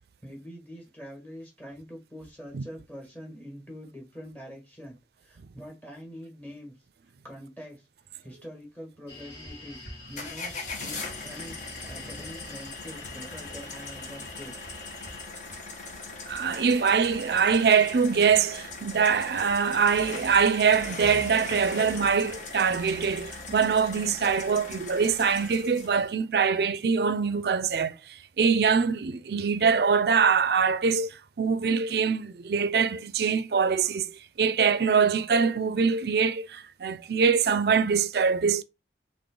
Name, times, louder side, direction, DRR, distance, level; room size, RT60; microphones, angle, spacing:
voice 1, 0.2-6.7 7.0-7.9 8.2-14.6, equal, 10° left, 1.5 m, -44 dB
sound 1, 9.1-25.2, left 2 dB, 80° left, 1.6 m, -49 dB
sound 2, 10.2-26.1, left 3 dB, 45° left, 0.9 m, -40 dB
voice 2, 16.3-28.0 28.4-31.1 31.4-34.1 34.4-38.6, right 6 dB, 60° right, 0.4 m, -23 dB
3.9 x 3.1 x 3.7 m
head